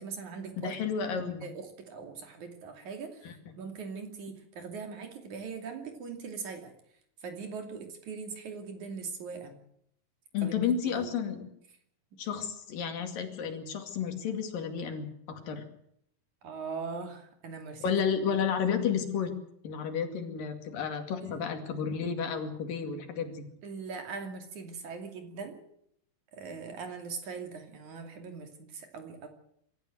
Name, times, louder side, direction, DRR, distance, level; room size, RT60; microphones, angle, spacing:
voice 1, 0.0-0.7 1.4-3.3 3.6-6.7 7.2-9.6 10.4-10.5 10.8-11.1 12.3-12.4 16.4-18.0 21.2-21.4 23.6-25.6 26.3-29.3, right 5 dB, 60° right, 5 dB, 4.0 m, -41 dB
voice 2, 0.6-1.5 3.2-3.5 10.3-11.5 12.2-15.6 17.8-19.3 19.6-23.4, left 7 dB, 80° left, 6 dB, 4.1 m, -32 dB
25.5 x 13.5 x 7.9 m, 0.72 s
omnidirectional pair, 3.9 m